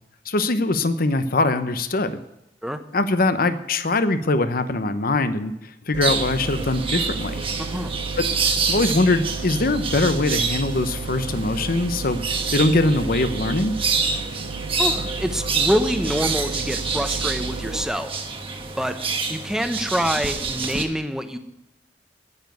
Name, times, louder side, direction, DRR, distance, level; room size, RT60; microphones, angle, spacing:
voice 1, 0.3-2.2 2.9-5.5 5.9-7.4 8.2-8.3 8.7-12.2 12.5-13.7, left 2 dB, 55° left, 11 dB, 0.9 m, -22 dB
sound 1, 5.9-17.8, right 4 dB, 80° right, 0.6 m, -33 dB
sound 2, 6.0-20.8, right 4 dB, 30° right, 1.2 m, -27 dB
voice 2, 7.6-8.0 14.8-18.2 18.8-19.0 19.3-21.4, equal, 5° right, 8 dB, 0.9 m, -26 dB
9.8 x 9.3 x 9.3 m, 0.88 s
head